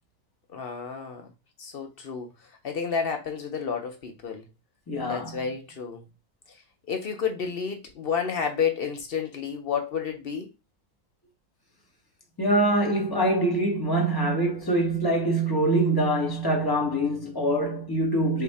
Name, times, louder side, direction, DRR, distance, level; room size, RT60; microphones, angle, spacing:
voice 1, 0.5-1.3 1.6-2.3 2.6-4.5 5.1-6.0 6.9-10.5, left 6 dB, 55° left, 0.7 m, -30 dB
voice 2, 4.9-5.4 12.4-18.4, right 1 dB, 20° left, 0.8 m, -24 dB
3.5 x 2.2 x 4.1 m
omnidirectional pair, 1.4 m